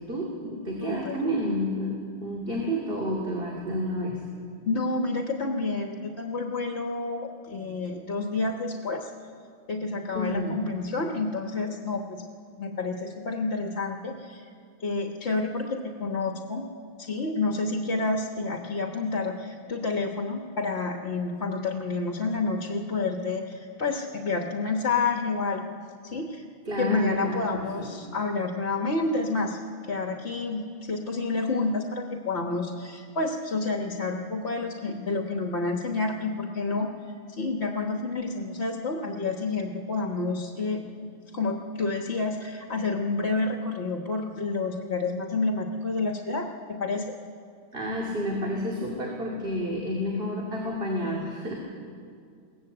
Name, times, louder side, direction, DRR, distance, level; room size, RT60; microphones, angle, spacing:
voice 1, 0.1-4.2 10.1-10.6 26.7-27.9 47.7-51.5, equal, 50° right, -2 dB, 2.7 m, -30 dB
voice 2, 0.8-1.2 4.6-9.1 9.7-12.3 12.6-14.5 14.8-16.7 17.0-25.8 26.0-26.4 26.8-36.9 37.3-47.1, left 3 dB, 65° left, 2 dB, 1.5 m, -29 dB
22.0 x 17.5 x 7.8 m, 2.2 s
omnidirectional pair, 1.3 m